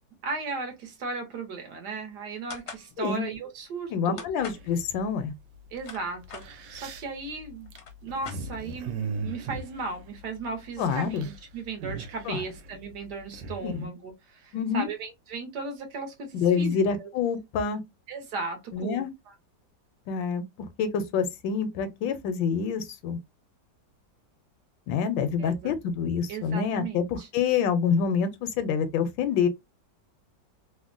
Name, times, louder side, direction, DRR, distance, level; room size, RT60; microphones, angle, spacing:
voice 1, 0.2-4.2 5.7-7.7 8.0-17.1 18.1-19.3 25.4-25.7 26.3-27.3, right 4 dB, 65° right, 1.4 m, -36 dB
sound 1, 2.5-2.9 4.2-4.7 5.6-6.5 7.3-7.4 7.6-8.8, left 6 dB, 55° left, 0.7 m, -42 dB
voice 2, 3.9-5.3 10.8-11.3 12.3-12.4 13.6-13.9 14.5-14.9 16.3-17.8 18.7-19.1 20.1-20.5 20.8-23.2 24.9-29.5, left 6 dB, 85° left, 1.3 m, -27 dB
sound 2, 4.4-5.0 5.8-5.9 6.2-10.5 10.7-11.4 11.6-13.7, right 4 dB, 85° right, 1.3 m, -38 dB
3.5 x 2.1 x 2.5 m
omnidirectional pair, 2.0 m